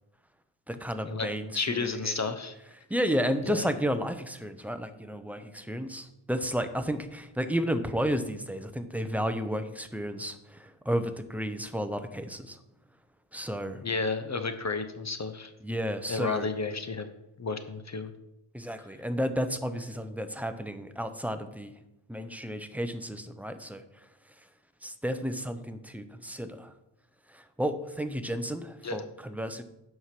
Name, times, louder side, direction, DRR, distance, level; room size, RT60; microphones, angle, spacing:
voice 1, 0.7-2.3 2.9-12.6 13.3-13.8 15.6-16.5 18.5-21.8 22.1-24.1 24.8-26.7 27.3-29.6, equal, 5° right, 9 dB, 0.6 m, -32 dB
voice 2, 1.5-2.5 3.4-3.6 13.8-15.5 16.1-17.1 17.4-18.1 28.8-29.0, left 4 dB, 35° left, 8 dB, 0.7 m, -32 dB
8.7 x 4.8 x 5.9 m, 0.88 s
wide cardioid pair, 100°, 47 cm